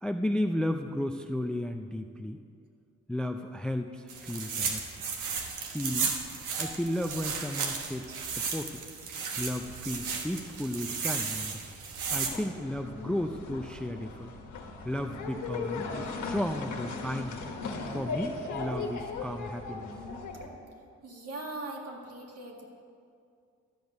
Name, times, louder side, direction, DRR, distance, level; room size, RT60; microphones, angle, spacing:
voice 1, 0.0-2.4 3.1-4.8 5.7-6.2 6.6-8.8 9.4-11.6 12.1-14.3 14.8-17.4 17.9-19.9, left 1 dB, 5° left, 6 dB, 0.4 m, -34 dB
sound 1, 4.1-12.3, right 5 dB, 90° right, 1.2 m, -34 dB
sound 2, 12.1-20.5, left 3 dB, 75° left, 1.4 m, -38 dB
voice 2, 21.0-22.7, right 2 dB, 55° right, 0 dB, 1.9 m, -40 dB
12.0 x 5.3 x 7.9 m, 2.4 s
cardioid pair, 90°, 30 cm